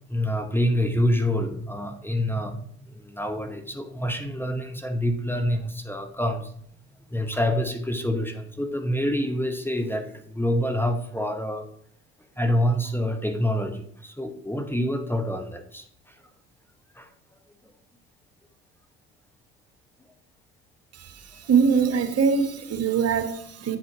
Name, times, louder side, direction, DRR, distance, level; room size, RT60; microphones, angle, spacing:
voice 1, 0.0-6.5 7.1-11.7 12.4-16.2 16.9-17.1, equal, 5° left, 6 dB, 1.0 m, -27 dB
voice 2, 20.9-23.8, right 6 dB, 50° right, 8 dB, 1.2 m, -23 dB
9.0 x 4.2 x 4.8 m, 0.65 s
hypercardioid pair, 65°, 33 cm